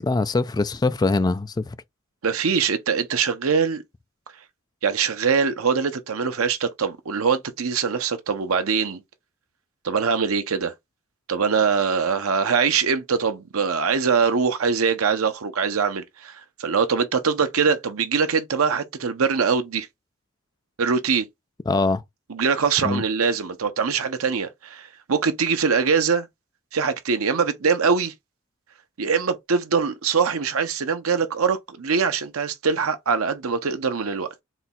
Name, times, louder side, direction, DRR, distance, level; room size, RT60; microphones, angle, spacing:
voice 1, 0.0-1.8 21.7-22.0 22.8-23.0, left 3 dB, 20° left, 0.3 m, -22 dB
voice 2, 2.2-3.8 4.8-9.0 9.8-10.7 11.3-19.9 20.8-21.3 22.3-26.3 26.7-28.1 29.0-34.4, right 5 dB, 85° right, 0.7 m, -23 dB
4.1 x 2.3 x 4.1 m
head